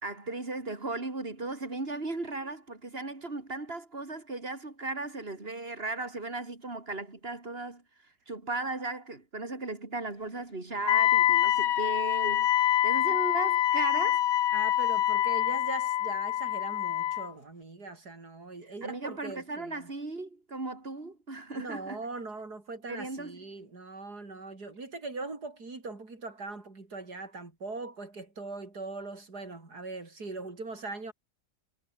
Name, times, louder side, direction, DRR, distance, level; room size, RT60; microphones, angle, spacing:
voice 1, 0.0-7.8 8.3-14.3 18.6-22.0 22.9-23.4, right 2 dB, 35° right, 4.1 m, -36 dB
Wind instrument woodwind instrument, 10.9-17.3, left 12 dB, 80° left, 1.5 m, -26 dB
voice 2, 14.5-19.9 21.5-31.1, right 3 dB, 65° right, 5.2 m, -41 dB
omnidirectional pair, 1.9 m